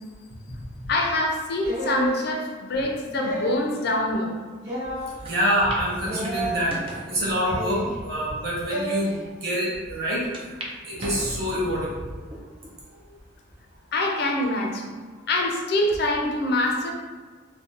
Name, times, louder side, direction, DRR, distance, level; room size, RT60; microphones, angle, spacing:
voice 1, 0.9-4.4 13.9-14.9 15.3-16.9, left 1 dB, 55° left, 1 dB, 0.4 m, -25 dB
sound 1, 1.6-2.2 3.1-3.7 4.6-5.1 6.0-6.6 7.5-7.9 8.7-9.0, right 2 dB, 80° right, 1.2 m, -30 dB
sound 2, 5.2-5.3 5.7-5.8 6.2-7.1 7.8-7.9 8.6-8.7 9.0-9.1 10.3-10.7 11.0-11.8 12.3-12.7 13.3-13.4 14.5-14.9, right 1 dB, 30° right, 0.4 m, -37 dB
voice 2, 5.2-6.7 7.1-10.2 10.8-12.2, equal, 55° right, -5 dB, 0.8 m, -26 dB
2.4 x 2.1 x 2.7 m, 1.5 s
head